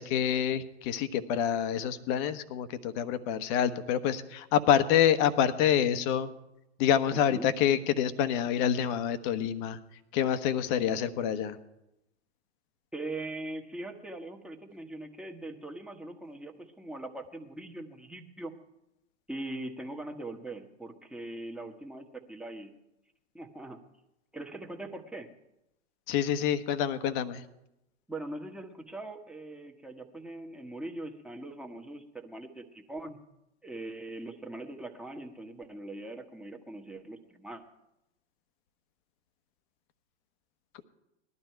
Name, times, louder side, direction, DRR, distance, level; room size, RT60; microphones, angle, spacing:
voice 1, 0.0-6.3 6.8-9.8 10.1-11.6 26.1-27.4, left 9 dB, 45° left, 12 dB, 1.2 m, -27 dB
voice 2, 7.1-7.5 12.9-18.5 19.3-22.7 23.3-23.8 24.3-25.3 28.1-33.2 33.6-37.6, right 2 dB, 5° right, 3 dB, 1.4 m, -41 dB
19.5 x 12.5 x 4.6 m, 0.90 s
figure-of-eight pair, 100°, 35 cm